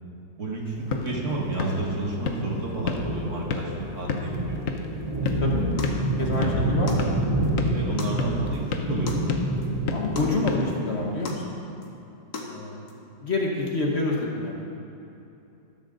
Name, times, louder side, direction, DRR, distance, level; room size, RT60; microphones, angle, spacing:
voice 1, 0.4-4.6 6.2-6.6 7.7-8.6 8.9-9.1 10.2-10.3, right 2 dB, 50° right, -2 dB, 2.0 m, -31 dB
sound 1, 0.6-11.4, left 5 dB, 60° left, 1.2 m, -34 dB
sound 2, 0.8-10.2, right 1 dB, 15° right, 3.2 m, -28 dB
sound 3, 5.3-5.4 5.8-6.0 6.3-6.4 6.9-7.1 7.4-7.5 8.0-8.2 8.5-8.6 9.1-9.3 9.6-9.7 10.2-10.4 10.7-10.8 11.3-11.4 11.8-11.9 12.3-12.5 12.9-13.0, left 4 dB, 75° left, 1.9 m, -36 dB
voice 2, 6.0-7.3 9.9-11.6 12.3-12.9 13.2-14.7, left 2 dB, 45° left, -1 dB, 1.5 m, -28 dB
13.5 x 13.0 x 3.9 m, 2.8 s
omnidirectional pair, 1.7 m